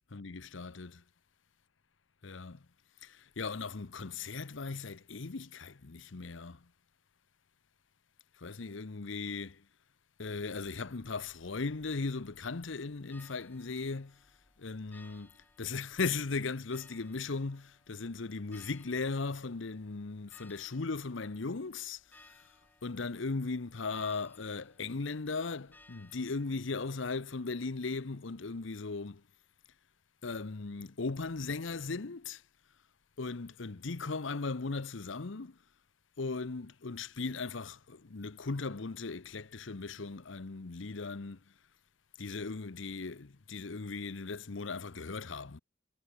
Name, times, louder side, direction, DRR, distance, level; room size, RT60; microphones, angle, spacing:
voice 1, 0.1-1.0 2.2-2.6 3.0-6.6 8.4-9.6 10.2-14.2 14.6-15.3 15.6-22.0 22.3-22.5 22.8-29.2 30.2-32.4 33.2-35.6 36.2-41.4 42.2-45.6, left 4 dB, 70° left, 0.8 m, -37 dB
sound 1, 10.4-26.8, left 2 dB, 10° left, 3.5 m, -63 dB
head